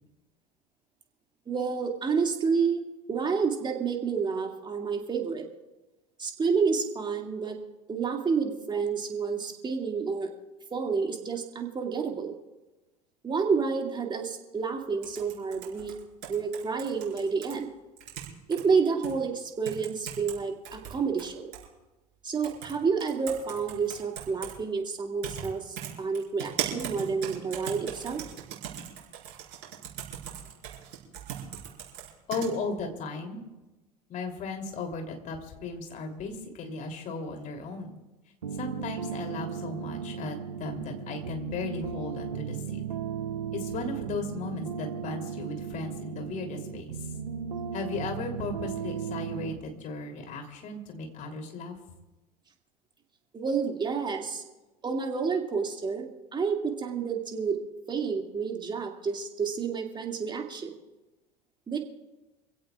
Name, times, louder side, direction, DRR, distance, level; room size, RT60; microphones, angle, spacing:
voice 1, 1.5-2.8 3.1-5.5 6.2-7.6 7.9-10.3 10.7-12.3 13.2-15.9 16.3-17.7 18.5-21.5 22.2-28.2 53.3-54.4 54.8-57.6 57.9-60.7 61.7-61.8, right 5 dB, 25° right, 3 dB, 2.3 m, -29 dB
sound 1, 15.0-17.5 18.0-18.6 19.0-19.1 19.7-20.4 20.7-21.7 22.4-22.7 23.0-24.5 25.2-25.5 25.8-32.5, right 10 dB, 55° right, 5.2 m, -38 dB
voice 2, 32.3-33.4 34.1-38.0 38.5-42.8 43.5-47.1 47.7-51.8, left 3 dB, 40° left, 3 dB, 3.2 m, -36 dB
sound 2, 38.4-49.6, right 7 dB, 75° right, 0.9 m, -36 dB
27.0 x 16.5 x 2.4 m, 1.1 s
figure-of-eight pair, 70°, 20 cm